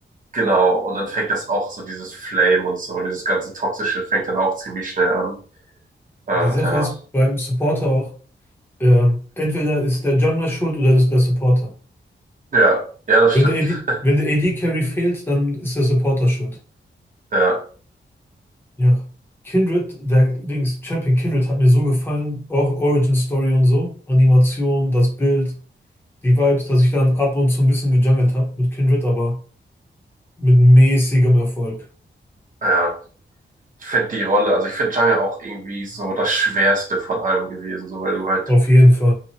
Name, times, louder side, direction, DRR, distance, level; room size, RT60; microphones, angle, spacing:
voice 1, 0.3-5.3 6.3-6.9 12.5-14.0 17.3-17.6 32.6-33.0 33.8-38.4, right 2 dB, 45° right, -1 dB, 0.9 m, -21 dB
voice 2, 6.4-8.1 8.8-11.7 13.3-16.6 18.8-19.0 19.4-25.6 26.2-29.4 30.4-31.8 38.5-39.1, equal, 10° left, -2 dB, 0.8 m, -17 dB
2.8 x 2.1 x 2.8 m, 0.41 s
wide cardioid pair, 150°, 19 cm